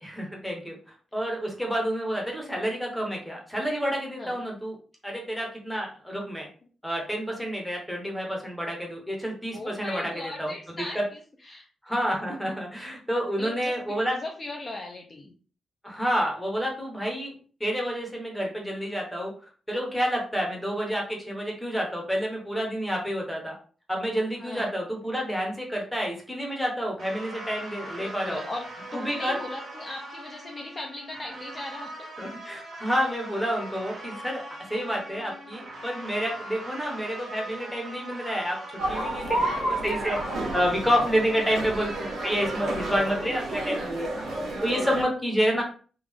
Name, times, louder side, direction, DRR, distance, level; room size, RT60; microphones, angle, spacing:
voice 1, 0.0-0.8 1.1-4.8 5.0-6.4 6.8-11.0 11.8-14.2 15.8-17.3 17.6-19.3 19.7-23.5 23.9-28.4 28.9-29.4 32.2-38.6 38.9-40.2 40.5-41.9 42.2-44.2 44.6-45.6, equal, 5° left, -1 dB, 0.8 m, -29 dB
voice 2, 9.5-11.7 13.4-15.3 24.4-24.7 28.0-31.9 45.4-45.6, left 2 dB, 25° left, 0 dB, 0.5 m, -38 dB
sound 1, 27.0-43.8, right 1 dB, 55° right, 1.4 m, -41 dB
sound 2, 38.8-45.0, right 1 dB, 90° right, 1.2 m, -31 dB
3.5 x 2.4 x 3.4 m, 0.40 s
wide cardioid pair, 165°, 0 cm